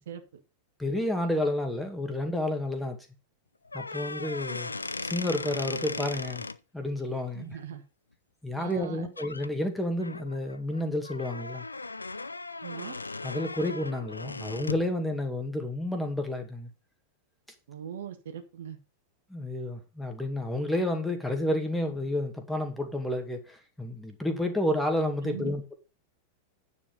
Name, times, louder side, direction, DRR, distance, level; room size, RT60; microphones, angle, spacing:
voice 1, 0.8-3.0 3.7-4.7 5.0-6.4 6.7-7.6 8.4-11.7 13.2-16.7 19.3-25.7, left 1 dB, 5° left, 2.2 m, -30 dB
sound 1, 3.6-6.6 8.7-8.9 9.2-9.5 10.0-14.9, left 3 dB, 80° left, 0.5 m, -38 dB
voice 2, 7.3-7.8 8.6-9.1 12.6-13.0 17.7-18.8 25.2-25.5, right 9 dB, 60° right, 1.6 m, -40 dB
9.8 x 7.2 x 5.3 m
figure-of-eight pair, 90°, 0 cm